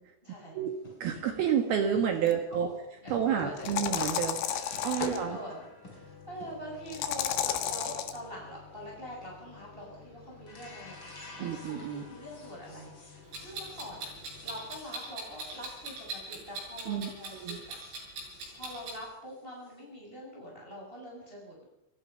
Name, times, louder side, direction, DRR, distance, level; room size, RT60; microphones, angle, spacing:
voice 1, 0.2-0.6 2.2-2.7 3.0-3.8 4.7-14.1 14.4-18.1 18.5-21.6, equal, 10° right, -3 dB, 7.1 m, -45 dB
sound 1, 0.7-16.9 17.1-19.7, left 2 dB, 25° left, 4.9 m, -48 dB
voice 2, 1.0-2.7 3.1-4.4 4.8-5.4 11.4-12.0 16.9-17.6, right 8 dB, 65° right, 5 dB, 3.1 m, -29 dB
sound 2, 2.3-2.4 3.6-5.2 6.9-8.2, left 10 dB, 70° left, 3.6 m, -32 dB
Clock, 13.3-19.0, right 3 dB, 80° right, 9.5 m, -41 dB
29.0 x 16.0 x 5.7 m, 0.85 s
omnidirectional pair, 5.3 m